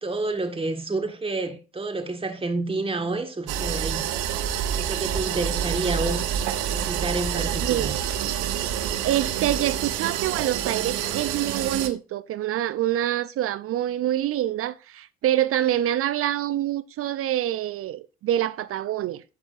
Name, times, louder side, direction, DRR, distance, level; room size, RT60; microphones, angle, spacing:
voice 1, 0.0-4.0 4.8-6.3 6.7-8.0, right 2 dB, 15° right, 1.7 m, -29 dB
sound 1, 3.5-11.9, right 9 dB, 65° right, 1.0 m, -27 dB
voice 2, 9.0-19.2, right 12 dB, 45° right, 0.5 m, -26 dB
10.5 x 7.5 x 2.6 m
figure-of-eight pair, 50°, 32 cm